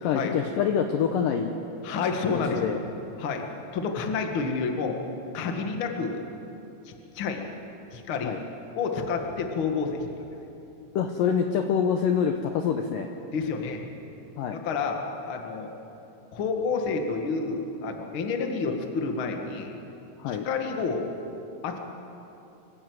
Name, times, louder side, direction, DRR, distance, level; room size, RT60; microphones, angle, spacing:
voice 1, 0.0-1.5 2.5-2.8 8.2-8.4 11.0-13.1 14.4-14.6 20.2-20.5, left 7 dB, 80° left, 5 dB, 2.0 m, -26 dB
voice 2, 1.8-2.7 3.2-3.4 3.7-5.0 5.3-6.2 6.8-7.4 7.9-8.3 8.7-10.1 13.3-13.8 14.5-15.7 16.3-19.8 20.3-21.1 21.6-21.8, left 4 dB, 50° left, 3 dB, 1.5 m, -29 dB
25.0 x 15.5 x 8.0 m, 2.9 s
omnidirectional pair, 5.0 m